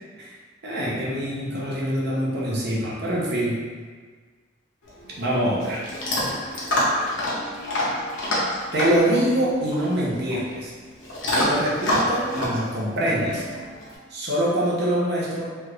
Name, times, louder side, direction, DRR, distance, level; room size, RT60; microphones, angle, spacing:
voice 1, 0.6-3.6 5.2-5.8 8.7-10.7 11.3-13.4 14.1-15.6, right 1 dB, 55° right, -5 dB, 0.8 m, -24 dB
Chewing mastication / Dog, 4.8-14.0, left 1 dB, 70° left, 0.9 m, -27 dB
3.2 x 2.4 x 3.2 m, 1.5 s
head